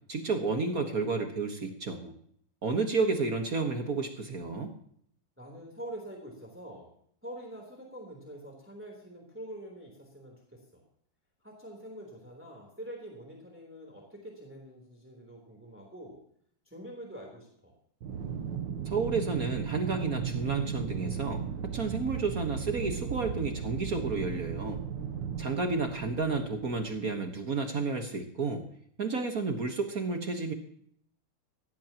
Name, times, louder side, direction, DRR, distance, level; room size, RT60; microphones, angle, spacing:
voice 1, 0.1-2.1 2.6-4.7 18.9-24.8 25.4-28.7 29.0-30.5, right 4 dB, 50° right, 5 dB, 1.8 m, -31 dB
voice 2, 5.4-6.9 7.2-10.8 11.4-16.2 16.7-17.7, right 1 dB, 5° right, -1 dB, 3.4 m, -45 dB
Aircraft, 18.0-27.5, right 7 dB, 70° right, 1.7 m, -36 dB
17.0 x 16.0 x 3.0 m, 0.63 s
omnidirectional pair, 2.1 m